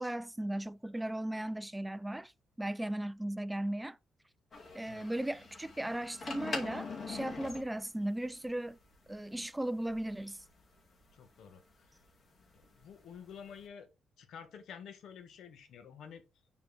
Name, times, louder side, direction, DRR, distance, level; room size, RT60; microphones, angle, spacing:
voice 1, 0.0-2.3 2.6-4.0 4.7-8.8 9.1-10.4, right 1 dB, 10° right, 0.4 m, -37 dB
sound 1, 4.5-13.6, left 3 dB, 40° left, 2.4 m, -44 dB
voice 2, 11.1-11.9 12.5-13.9 14.2-16.2, left 7 dB, 70° left, 1.4 m, -50 dB
7.2 x 4.3 x 4.1 m
cardioid pair, 90°, 0 cm